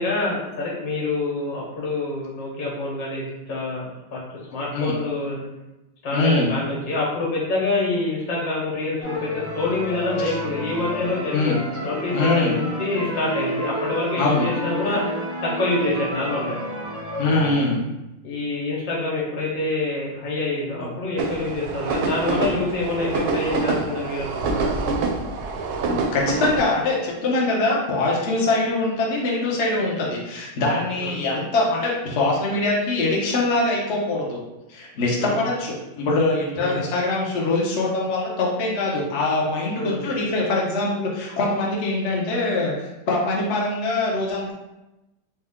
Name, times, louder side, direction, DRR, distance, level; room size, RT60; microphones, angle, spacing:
voice 1, 0.0-3.8 4.1-4.2 4.5-5.4 6.0-11.5 11.8-15.0 15.4-16.6 18.2-24.7 31.0-31.2 35.2-35.4 36.6-36.8 39.8-40.0, left 2 dB, 75° left, -5 dB, 1.8 m, -26 dB
voice 2, 6.1-6.5 10.2-10.3 11.3-11.6 12.1-12.5 14.2-14.5 17.2-17.8 25.9-34.4 34.7-44.5, left 2 dB, 55° left, -3 dB, 0.8 m, -23 dB
sound 1, 9.0-17.5, equal, 15° left, 0.5 m, -30 dB
sound 2, 21.2-26.6, right 3 dB, 75° right, 0.9 m, -26 dB
4.3 x 2.2 x 3.5 m, 0.98 s
omnidirectional pair, 2.0 m